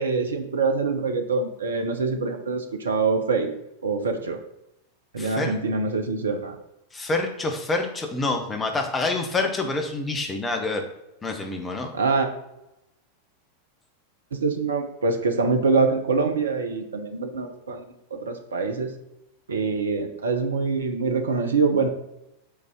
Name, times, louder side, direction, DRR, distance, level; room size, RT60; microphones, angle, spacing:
voice 1, 0.0-3.5 3.8-4.4 5.1-6.6 11.9-12.3 14.3-17.8 18.1-18.9 19.5-21.9, right 4 dB, 70° right, 6 dB, 1.0 m, -24 dB
voice 2, 5.2-5.6 6.9-10.9 11.2-11.9, left 3 dB, 15° left, 4 dB, 1.4 m, -27 dB
7.0 x 4.1 x 5.3 m, 0.87 s
figure-of-eight pair, 90°, 0 cm